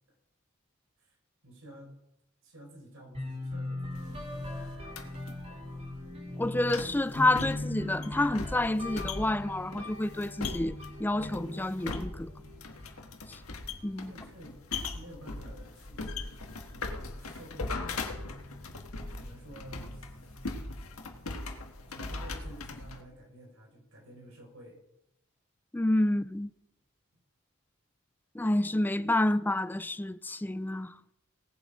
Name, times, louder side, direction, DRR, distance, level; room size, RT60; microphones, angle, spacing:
voice 1, 1.4-1.9 2.4-5.2 5.7-5.8 14.0-18.6 19.1-20.0 21.9-24.8, right 1 dB, 70° right, 4.5 m, -51 dB
sound 1, 3.1-13.0, left 2 dB, 30° right, 3.0 m, -40 dB
sound 2, 4.0-23.0, left 3 dB, 90° left, 1.6 m, -40 dB
voice 2, 6.4-12.3 13.3-13.4 13.8-14.1 25.7-26.5 28.3-31.1, left 1 dB, 10° left, 0.3 m, -29 dB
18.5 x 7.5 x 5.0 m
head